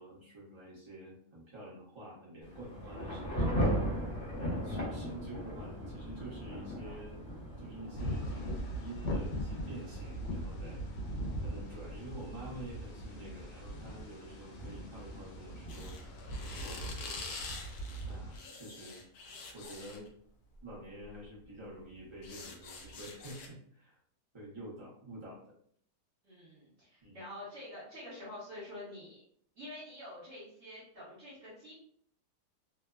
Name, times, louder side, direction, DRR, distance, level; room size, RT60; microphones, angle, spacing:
voice 1, 0.0-4.0 4.3-7.2 7.6-10.8 11.4-16.0 16.5-16.9 17.4-17.5 18.1-19.0 19.5-20.1 20.6-24.0 24.3-25.5 27.0-27.2, right 1 dB, 25° right, -6 dB, 0.7 m, -48 dB
Thunder / Rain, 2.4-16.9, equal, 45° left, 1.0 m, -39 dB
sound 1, 8.0-18.4, equal, 90° left, 1.3 m, -40 dB
sound 2, 15.7-20.1 21.1-21.3 21.6-23.5, left 4 dB, 75° left, 1.0 m, -46 dB
voice 2, 26.2-29.2 29.5-31.7, left 1 dB, 50° right, -10 dB, 1.3 m, -47 dB
3.1 x 2.1 x 2.3 m, 0.64 s
omnidirectional pair, 1.8 m